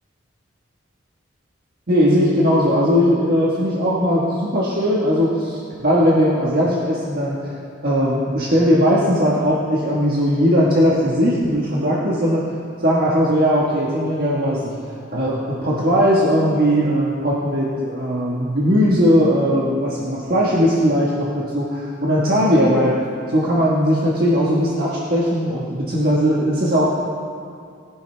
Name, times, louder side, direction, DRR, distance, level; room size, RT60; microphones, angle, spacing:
voice 1, 1.9-7.5 7.8-12.5 12.8-14.8 15.1-26.8, equal, 50° right, -6 dB, 1.4 m, -18 dB
19.0 x 10.5 x 3.3 m, 2.4 s
head